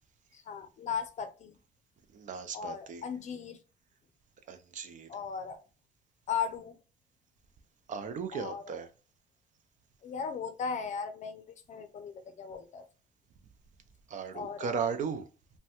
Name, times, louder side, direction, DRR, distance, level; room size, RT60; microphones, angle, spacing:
voice 1, 0.3-1.6 2.5-3.6 5.1-5.6 6.3-6.8 8.3-8.8 10.0-11.4 11.7-12.8 14.3-14.8, left 6 dB, 45° left, 0.5 m, -37 dB
voice 2, 2.1-3.0 4.5-5.1 7.9-8.9 14.1-15.3, right 6 dB, 50° right, 0.5 m, -36 dB
3.2 x 2.2 x 2.8 m
cardioid pair, 110°, 17 cm